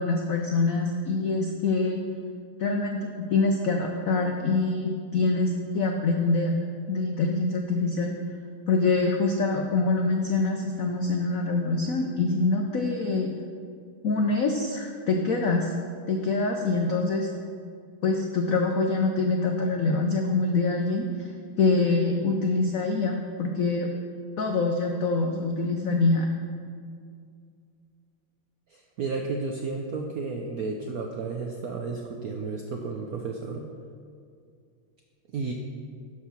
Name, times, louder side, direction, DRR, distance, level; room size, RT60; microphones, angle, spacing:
voice 1, 0.0-2.0 2.6-6.5 6.9-8.1 8.7-13.3 14.0-15.7 16.1-17.3 18.0-21.1 21.6-23.9 24.4-26.3, left 3 dB, 85° left, 2 dB, 0.7 m, -25 dB
voice 2, 28.7-33.7 35.3-35.5, right 4 dB, 75° right, 1 dB, 0.8 m, -32 dB
12.5 x 4.8 x 5.7 m, 2.3 s
omnidirectional pair, 2.4 m